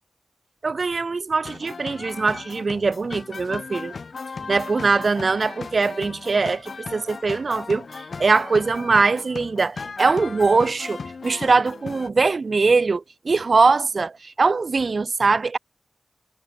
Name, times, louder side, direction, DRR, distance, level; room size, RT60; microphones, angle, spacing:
voice 1, 0.6-3.9 4.5-15.6, right 4 dB, 60° right, 0.8 m, -22 dB
sound 1, 1.4-12.1, left 4 dB, 70° left, 1.8 m, -37 dB
wide cardioid pair, 65°, 0 cm